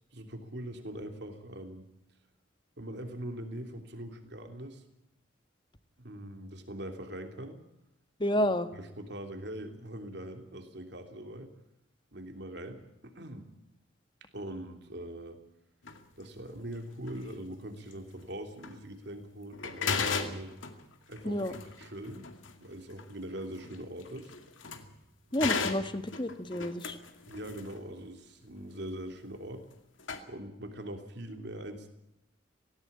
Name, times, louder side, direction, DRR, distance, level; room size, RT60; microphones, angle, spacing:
voice 1, 0.1-1.9 2.8-4.8 6.0-7.6 8.7-11.5 12.1-13.5 14.3-15.4 16.2-20.5 21.1-22.3 22.6-24.3 25.7-26.1 27.3-29.6 30.3-31.9, right 1 dB, 60° right, 6 dB, 3.1 m, -42 dB
voice 2, 8.2-8.7 21.2-21.6 25.3-27.0, left 1 dB, 25° left, 10 dB, 1.4 m, -30 dB
sound 1, 15.8-16.0 17.1-17.3 17.9-18.0 18.6-18.8 19.2-19.3 19.5-25.0 25.3-27.8 29.7-29.8 30.0-30.2, left 5 dB, 75° left, 2.3 m, -36 dB
18.0 x 18.0 x 8.7 m, 0.85 s
head